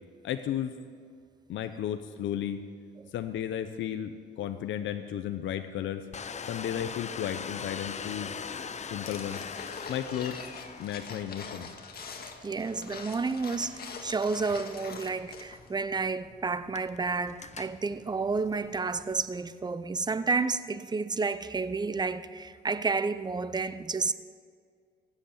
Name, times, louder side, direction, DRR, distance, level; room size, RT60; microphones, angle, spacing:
voice 1, 0.2-0.7 1.5-2.6 3.1-6.0 6.5-8.4 8.9-9.4 9.9-10.4 10.8-11.7, left 10 dB, 75° left, 0.8 m, -34 dB
Domestic sounds home sounds, 6.1-19.2, left 6 dB, 35° left, 0.7 m, -43 dB
sound 1, 9.1-15.7 16.0-16.1, left 5 dB, 50° left, 1.8 m, -44 dB
voice 2, 12.4-13.7 14.0-24.1, right 4 dB, 20° right, 0.7 m, -30 dB
16.5 x 8.0 x 8.4 m
cardioid pair, 90°, 20 cm